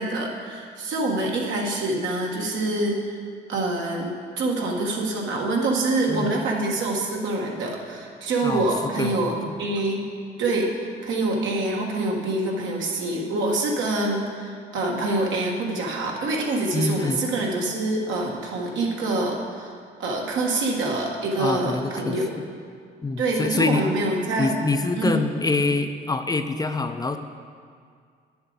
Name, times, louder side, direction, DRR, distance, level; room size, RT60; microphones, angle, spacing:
voice 1, 0.0-3.2 3.5-10.0 10.4-10.7 11.0-19.7 20.0-22.3 23.2-24.5 25.0-25.2, right 2 dB, 75° right, -1 dB, 1.5 m, -25 dB
voice 2, 8.4-9.5 16.7-17.2 21.4-22.2 23.0-23.9 24.4-27.2, left 3 dB, 20° left, 7 dB, 0.4 m, -25 dB
10.0 x 7.0 x 3.9 m, 2.1 s
cardioid pair, 95°, 20 cm